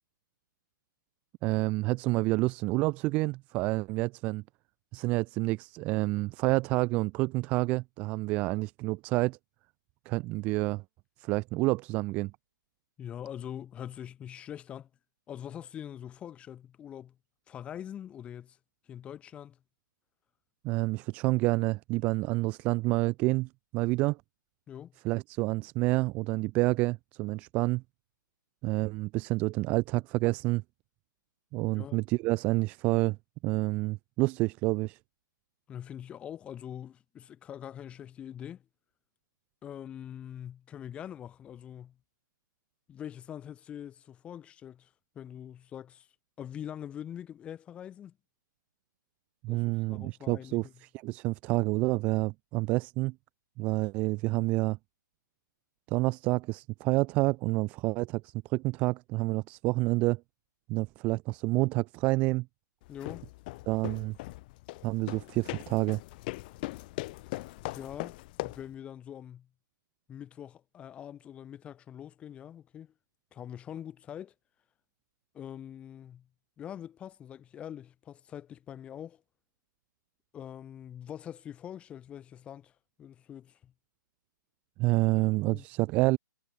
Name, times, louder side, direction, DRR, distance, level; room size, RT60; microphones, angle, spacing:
voice 1, 1.4-4.4 4.9-9.4 10.1-10.8 11.2-12.3 20.6-24.2 25.0-27.8 28.6-30.6 31.5-33.2 33.4-35.0 49.4-53.1 53.6-54.8 55.9-60.2 60.7-62.5 63.7-64.2 64.8-66.0 84.8-86.2, right 22 dB, 15° right, 0.5 m, -28 dB
voice 2, 13.0-14.9 15.3-17.2 17.5-18.6 18.9-19.6 24.7-24.9 31.7-32.0 35.7-38.6 39.6-42.0 42.9-46.1 46.4-48.1 49.5-50.7 62.9-63.3 67.7-69.5 70.1-72.9 73.3-74.3 75.3-76.3 76.6-79.2 80.3-82.7 83.0-83.7 85.5-85.6, left 10 dB, 10° left, 2.9 m, -43 dB
sound 1, 62.8-68.7, left 21 dB, 25° left, 5.2 m, -40 dB
hypercardioid pair, 165°, 11 cm